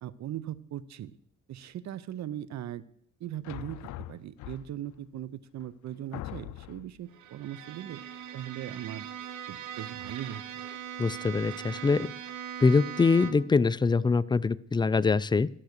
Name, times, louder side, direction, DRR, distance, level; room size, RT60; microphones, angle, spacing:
voice 1, 0.0-1.1 1.5-2.8 3.2-8.0 8.3-9.1 9.5-10.4, right 11 dB, 65° right, 17 dB, 0.7 m, -39 dB
sound 1, 3.4-5.0 5.6-5.7 6.1-7.0, left 14 dB, 75° left, 0.5 m, -41 dB
Bowed string instrument, 7.1-13.6, right 9 dB, 85° right, 1.1 m, -40 dB
voice 2, 11.0-12.1 12.6-15.5, left 4 dB, 15° left, 17 dB, 0.3 m, -24 dB
13.0 x 5.9 x 6.6 m, 0.67 s
cardioid pair, 90°, 30 cm